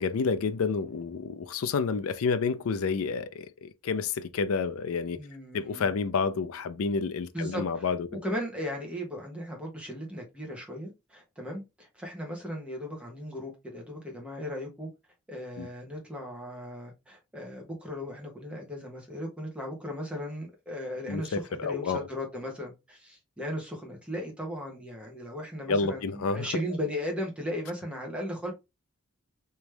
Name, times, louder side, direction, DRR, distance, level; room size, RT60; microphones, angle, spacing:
voice 1, 0.0-5.2 5.5-8.1 15.6-15.7 21.1-22.1 25.7-26.5, left 4 dB, 70° left, 0.4 m, -29 dB
voice 2, 5.2-5.9 7.3-14.9 15.3-28.5, equal, 5° right, 1.1 m, -37 dB
3.4 x 3.0 x 3.3 m
head